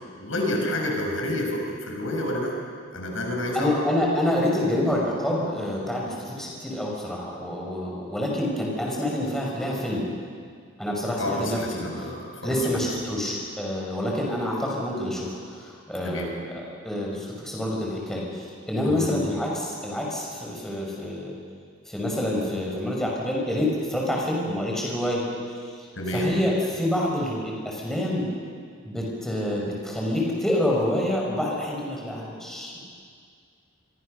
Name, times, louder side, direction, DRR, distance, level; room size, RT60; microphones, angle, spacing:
voice 1, 0.2-2.5 2.9-3.8 11.2-12.9 16.0-16.3 18.8-19.1 26.0-26.3, left 1 dB, 80° left, 1 dB, 6.0 m, -29 dB
voice 2, 3.5-10.0 10.8-11.8 12.4-21.4 21.9-25.2 25.6-25.7 26.1-28.3 28.9-32.8, left 1 dB, ahead, -3 dB, 5.5 m, -27 dB
28.0 x 23.5 x 6.6 m, 2.1 s
head